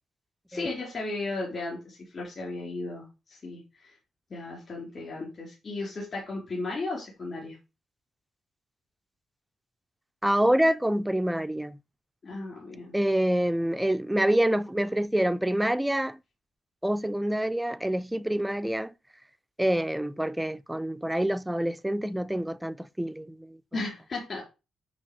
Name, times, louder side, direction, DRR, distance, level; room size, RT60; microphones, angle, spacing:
voice 1, 0.5-3.9 4.3-7.6 12.2-13.0 23.7-24.4, left 2 dB, 40° left, 3.5 m, -35 dB
voice 2, 10.2-11.8 12.9-16.2 16.8-18.9 19.6-23.6, right 1 dB, 5° right, 0.3 m, -26 dB
9.6 x 3.4 x 5.2 m
wide cardioid pair, 160°, 0 cm